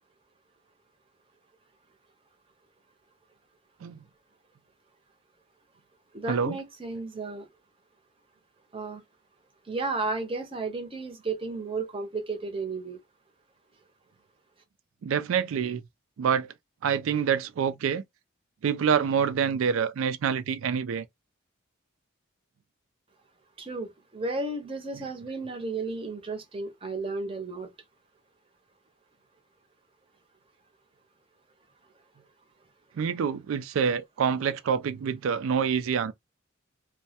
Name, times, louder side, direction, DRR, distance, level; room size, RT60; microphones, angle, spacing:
voice 1, 6.1-7.5 8.7-9.0 9.7-13.0 23.6-27.7, right 3 dB, 25° right, 0.6 m, -33 dB
voice 2, 15.0-15.8 16.2-16.5 16.8-18.0 18.6-21.1 33.0-36.1, right 7 dB, 80° right, 0.3 m, -26 dB
2.2 x 2.1 x 2.7 m
head